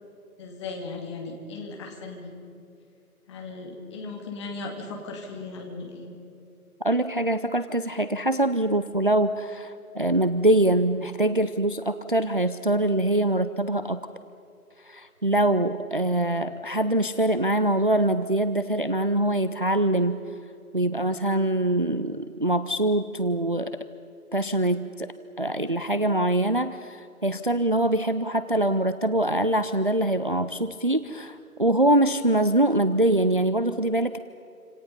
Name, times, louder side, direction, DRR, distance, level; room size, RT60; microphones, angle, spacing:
voice 1, 0.4-2.3 3.3-6.1, left 3 dB, 20° left, 1 dB, 2.5 m, -37 dB
voice 2, 6.8-14.0 14.8-20.2 20.7-23.9 24.3-25.1 25.4-34.2, right 1 dB, 35° right, 11 dB, 0.5 m, -24 dB
28.0 x 26.5 x 5.6 m, 2.7 s
figure-of-eight pair, 150°, 45 cm